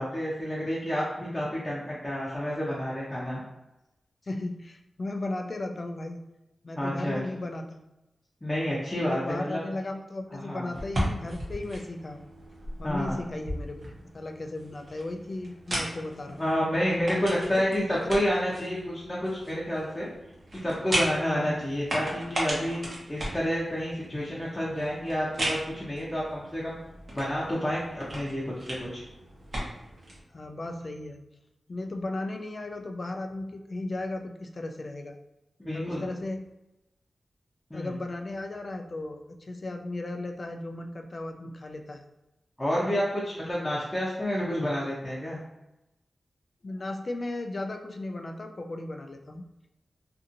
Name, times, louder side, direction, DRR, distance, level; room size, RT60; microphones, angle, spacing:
voice 1, 0.0-3.4 6.7-7.2 8.4-9.6 10.3-10.7 12.8-13.2 16.4-20.1 20.5-22.8 23.1-26.8 27.1-29.0 35.6-36.0 37.7-37.9 42.6-45.4, equal, 15° left, -7 dB, 0.7 m, -29 dB
voice 2, 4.3-6.2 6.6-7.9 9.1-12.3 12.8-13.8 14.1-16.4 17.1-17.4 18.3-18.4 21.3-21.6 30.3-31.2 31.7-35.2 35.7-36.4 37.7-42.0 46.6-49.4, left 2 dB, 45° left, 4 dB, 0.3 m, -35 dB
sound 1, 10.7-30.2, right 1 dB, 55° right, 0.9 m, -37 dB
2.6 x 2.6 x 2.5 m, 0.95 s
wide cardioid pair, 75°, 0 cm